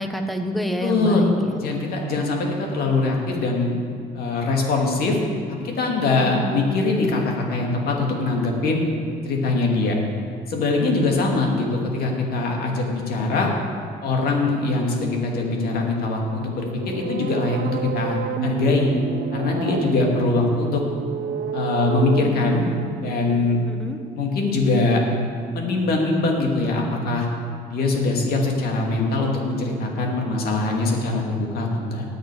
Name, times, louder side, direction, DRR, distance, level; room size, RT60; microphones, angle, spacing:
voice 1, 0.0-1.6 6.3-6.7 11.3-11.7 23.7-24.0, equal, ahead, 5 dB, 1.1 m, -28 dB
voice 2, 0.8-1.2 1.6-3.8 4.1-5.2 5.5-8.8 9.2-10.0 10.5-11.7 11.9-13.5 14.0-18.9 19.3-20.8 21.5-22.7 23.0-23.6 24.1-25.0 25.5-27.3 27.7-32.0, left 3 dB, 65° left, 0 dB, 2.4 m, -22 dB
sound 1, 16.4-24.2, right 7 dB, 60° right, 0.8 m, -31 dB
19.5 x 6.6 x 4.9 m, 2.1 s
cardioid pair, 110°, 17 cm